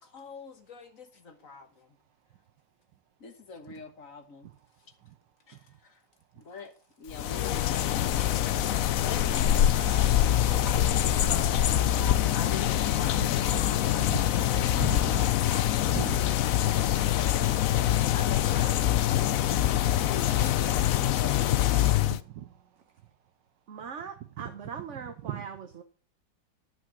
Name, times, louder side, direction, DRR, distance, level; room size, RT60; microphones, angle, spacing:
voice 1, 0.0-1.9 3.2-4.5 5.5-6.0 6.3-13.4 13.7-20.8 21.2-21.3, left 4 dB, 45° left, 1.7 m, -44 dB
sound 1, 7.1-22.2, left 12 dB, 65° left, 0.9 m, -25 dB
voice 2, 9.6-10.6 13.2-13.7 14.1-15.2 15.9-16.3 20.7-21.1 21.9-22.5 25.2-25.5, right 12 dB, 75° right, 1.4 m, -40 dB
voice 3, 23.7-25.8, right 6 dB, 45° right, 1.1 m, -41 dB
11.5 x 6.0 x 7.4 m
omnidirectional pair, 2.0 m